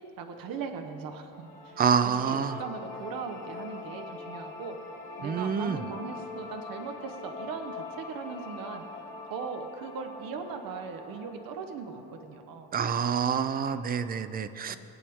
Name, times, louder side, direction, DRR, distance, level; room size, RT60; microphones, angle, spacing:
voice 1, 0.2-4.7 5.2-8.8 9.3-12.7 14.7-14.8, right 5 dB, 55° right, 5 dB, 1.0 m, -39 dB
sound 1, 1.3-12.4, left 3 dB, 15° left, 1.9 m, -43 dB
voice 2, 1.8-2.6 5.2-5.8 12.7-14.8, right 6 dB, 25° right, 12 dB, 0.3 m, -27 dB
21.0 x 8.4 x 3.5 m, 2.9 s
cardioid pair, 140°, 42 cm